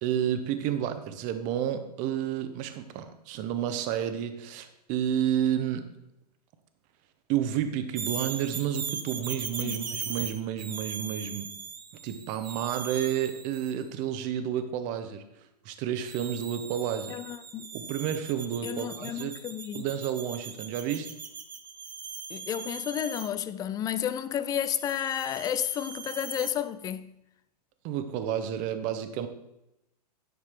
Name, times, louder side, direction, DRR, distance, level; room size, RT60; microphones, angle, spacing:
voice 1, 0.0-5.9 7.3-11.5 12.0-15.2 15.6-17.2 17.7-19.4 19.7-21.1 27.8-29.3, right 10 dB, 40° right, 0.9 m, -30 dB
sound 1, 8.0-13.8 16.0-23.3 24.8-26.5, right 6 dB, 85° right, 1.0 m, -40 dB
voice 2, 17.1-17.7 18.6-19.9 22.3-27.1, left 10 dB, 15° left, 0.3 m, -32 dB
10.0 x 6.4 x 3.6 m
hypercardioid pair, 115°, 21 cm